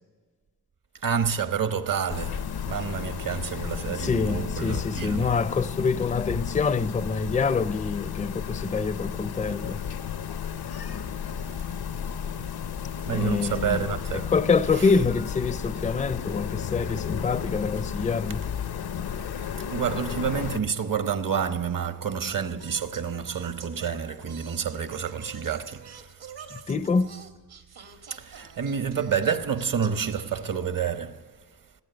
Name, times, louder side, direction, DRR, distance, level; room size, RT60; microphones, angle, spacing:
voice 1, 1.0-5.4 13.1-14.3 14.7-14.9 19.7-26.1 28.1-31.3, right 7 dB, 55° right, 1.0 m, -29 dB
sound 1, 2.1-20.6, left 8 dB, 75° left, 0.8 m, -33 dB
voice 2, 4.0-9.8 13.1-13.8 14.3-18.4 26.5-27.1, left 4 dB, 20° left, 0.5 m, -26 dB
Singing, 22.2-31.0, right 6 dB, 75° right, 1.6 m, -47 dB
18.0 x 8.8 x 7.8 m
wide cardioid pair, 115°, 39 cm